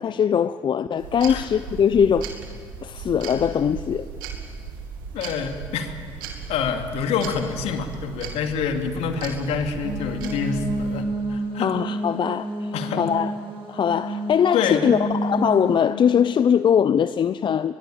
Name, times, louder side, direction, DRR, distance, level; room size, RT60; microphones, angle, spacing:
voice 1, 0.0-2.3 2.8-4.1 11.6-13.3 13.7-17.7, left 8 dB, 45° left, 14 dB, 0.7 m, -21 dB
sound 1, 1.0-11.1, right 6 dB, 85° right, 2.5 m, -37 dB
voice 2, 5.1-11.7 12.7-13.0 14.5-14.8, left 6 dB, 70° left, 6 dB, 2.5 m, -27 dB
sound 2, 9.8-15.8, right 1 dB, 55° right, 5.6 m, -29 dB
23.5 x 22.0 x 9.0 m, 2.1 s
hypercardioid pair, 50°, 11 cm